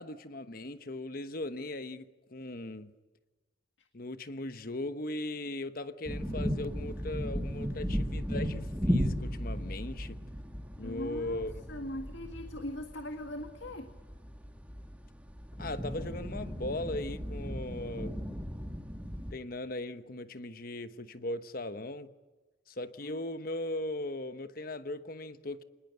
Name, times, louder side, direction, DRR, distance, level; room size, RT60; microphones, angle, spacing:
voice 1, 0.0-2.9 3.9-10.2 10.8-11.5 15.6-18.2 19.3-22.1 22.7-25.6, left 2 dB, 50° left, 1.1 m, -38 dB
sound 1, 6.1-19.3, equal, 5° right, 2.1 m, -36 dB
voice 2, 10.8-13.9 23.0-23.2, left 1 dB, 75° left, 1.9 m, -41 dB
26.5 x 20.0 x 8.0 m
head